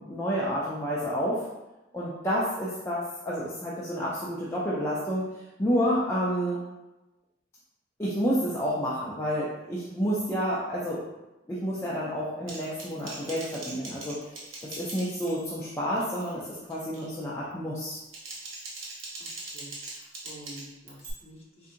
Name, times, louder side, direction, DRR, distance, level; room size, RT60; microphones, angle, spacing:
voice 1, 0.0-1.4 1.9-5.3 5.6-6.6 8.0-11.0 11.5-14.2 14.6-18.0, equal, 15° left, -8 dB, 0.4 m, -29 dB
Typing, 12.5-15.6 16.0-16.3 16.7-17.1 17.9-21.1, right 2 dB, 70° right, 0.8 m, -42 dB
voice 2, 19.4-19.7 19.9-21.7, right 1 dB, 30° left, -7 dB, 1.0 m, -48 dB
3.7 x 2.8 x 2.6 m, 1.0 s
head